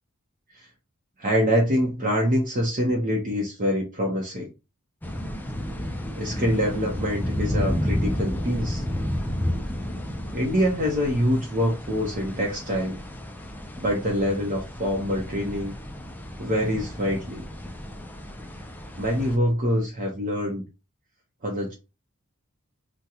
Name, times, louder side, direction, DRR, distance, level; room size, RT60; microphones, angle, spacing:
voice 1, 1.2-4.5 6.2-8.8 10.3-13.0 13.8-15.7 16.4-17.4 19.0-20.6 21.4-21.7, equal, 40° right, 0.7 m, -25 dB
sound 1, 5.0-19.4, left 1 dB, 10° left, 0.4 m, -32 dB
2.8 x 2.1 x 3.6 m
head